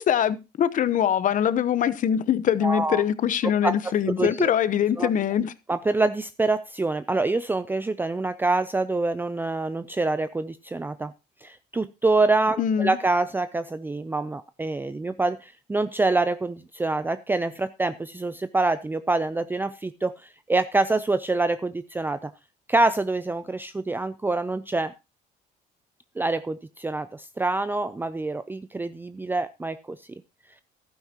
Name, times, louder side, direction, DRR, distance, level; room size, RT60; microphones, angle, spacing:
voice 1, 0.0-5.5 12.6-13.0, left 9 dB, 50° left, 15 dB, 0.9 m, -23 dB
voice 2, 2.6-3.0 3.6-3.7 4.1-4.5 5.0-5.1 5.7-11.1 11.4-22.3 22.7-24.9 26.2-30.2, right 3 dB, 10° right, 12 dB, 0.5 m, -26 dB
14.0 x 11.5 x 2.9 m, 0.26 s
cardioid pair, 110°, 17 cm